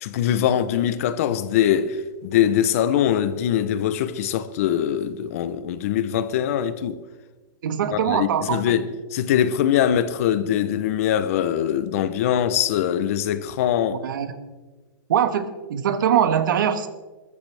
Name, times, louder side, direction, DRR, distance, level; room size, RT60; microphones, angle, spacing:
voice 1, 0.0-7.0 7.9-14.0, left 10 dB, 40° left, 0.7 m, -22 dB
voice 2, 7.6-8.8 14.0-14.3 15.1-16.9, right 9 dB, 65° right, 1.3 m, -22 dB
21.0 x 14.0 x 3.4 m
supercardioid pair, 170°, 11 cm